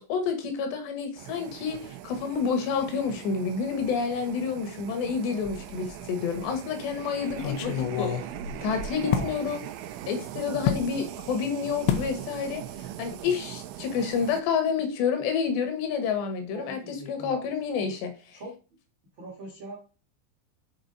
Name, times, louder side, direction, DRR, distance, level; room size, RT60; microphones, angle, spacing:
voice 1, 0.0-8.1 8.6-9.6 10.1-12.6 13.0-16.8 17.1-18.4, left 6 dB, 75° left, 6 dB, 3.2 m, -29 dB
sound 1, 1.2-14.4, right 13 dB, 85° right, 2.9 m, -40 dB
sound 2, 5.4-6.0 6.4-6.5 7.3-9.4 10.7-10.9 11.9-12.2 12.5-12.8 13.1-13.2, left 9 dB, 90° left, 3.0 m, -29 dB
voice 2, 9.0-9.3 16.5-17.4 18.3-18.5 19.2-19.8, right 1 dB, 65° right, -2 dB, 1.2 m, -40 dB
7.8 x 4.3 x 3.9 m, 0.33 s
omnidirectional pair, 5.3 m